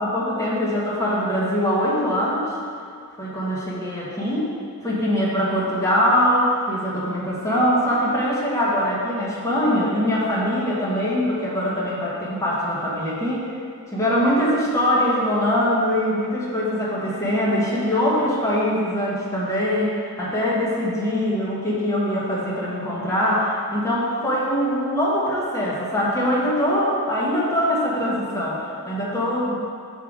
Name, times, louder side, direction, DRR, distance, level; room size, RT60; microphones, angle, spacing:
voice 1, 0.0-2.6 3.2-4.5 4.8-13.5 13.9-29.6, equal, 15° left, -7 dB, 1.1 m, -22 dB
5.7 x 3.7 x 4.7 m, 2.3 s
head